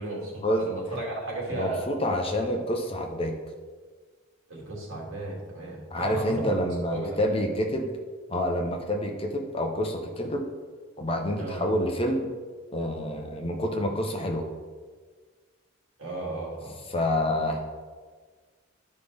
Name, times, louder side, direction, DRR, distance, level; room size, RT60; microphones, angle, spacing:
voice 1, 0.0-1.8 4.5-6.5 6.9-7.4 11.3-11.6 16.0-16.7, right 2 dB, 80° right, -4 dB, 2.6 m, -34 dB
voice 2, 1.5-3.3 5.9-7.9 8.3-10.4 11.0-12.3 12.7-14.4 16.9-17.6, left 1 dB, 25° left, 2 dB, 0.8 m, -28 dB
12.0 x 5.3 x 3.5 m, 1.5 s
head